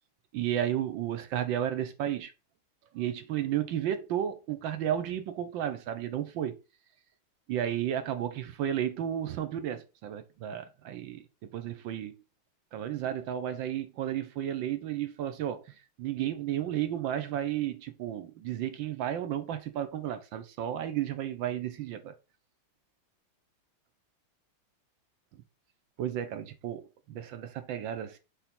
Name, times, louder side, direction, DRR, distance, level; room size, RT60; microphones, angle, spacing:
voice 1, 0.3-2.3 2.9-6.6 7.5-12.2 12.7-22.1 26.0-26.8 27.1-28.2, right 10 dB, 65° right, 1.4 m, -33 dB
5.8 x 4.1 x 4.1 m
omnidirectional pair, 2.4 m